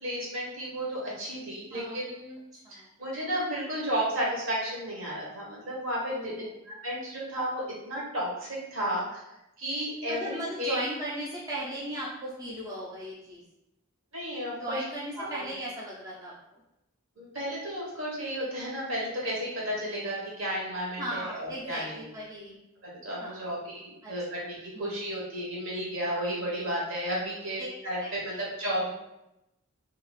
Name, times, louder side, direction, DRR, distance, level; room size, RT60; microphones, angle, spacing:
voice 1, 0.0-2.4 2.7-6.3 6.6-9.2 9.6-10.8 14.1-14.8 15.2-15.5 17.2-22.1 22.8-28.9, equal, 70° right, -4 dB, 1.0 m, -33 dB
voice 2, 6.1-6.5 10.1-13.4 14.6-16.3 21.0-22.6 23.2-23.5 24.0-24.1 24.7-24.8 28.0-28.4, equal, 15° right, -6 dB, 0.4 m, -37 dB
2.7 x 2.3 x 3.0 m, 0.89 s
head